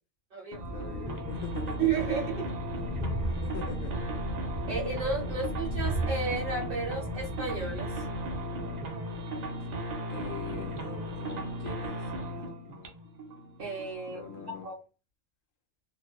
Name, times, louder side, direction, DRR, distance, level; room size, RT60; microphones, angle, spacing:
sound 1, 0.5-14.6, equal, 70° right, 0.4 m, -37 dB
Train, 0.6-8.4, right 1 dB, 60° left, 0.5 m, -36 dB
voice 1, 0.7-2.0 3.4-4.3 5.3-5.5 10.1-12.9 14.1-14.7, left 7 dB, 80° left, 1.0 m, -43 dB
voice 2, 1.8-2.5 3.3-3.4 4.7-8.0 13.6-14.8, right 5 dB, 45° right, 1.2 m, -33 dB
2.9 x 2.1 x 2.2 m
omnidirectional pair, 1.3 m